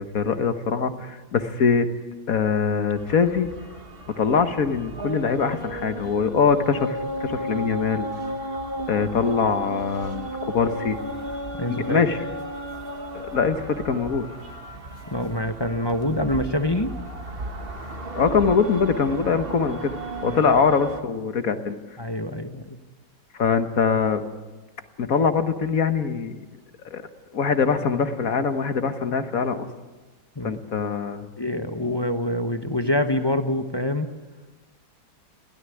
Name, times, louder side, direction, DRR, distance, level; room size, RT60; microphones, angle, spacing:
voice 1, 0.0-1.9 2.3-3.5 4.2-8.1 8.9-11.0 11.7-12.2 13.3-14.3 18.1-19.9 20.2-21.8 23.3-24.2 25.0-26.4 26.8-27.0 27.3-29.7 30.4-31.3, left 5 dB, 50° left, 9 dB, 1.6 m, -23 dB
sound 1, 2.9-21.0, right 1 dB, 30° right, 1.7 m, -34 dB
voice 2, 11.6-12.0 15.1-16.9 20.2-20.4 22.0-22.6 30.4-30.5 31.4-34.1, left 1 dB, 20° left, 7 dB, 0.7 m, -25 dB
23.0 x 16.5 x 9.8 m, 1.2 s
omnidirectional pair, 2.2 m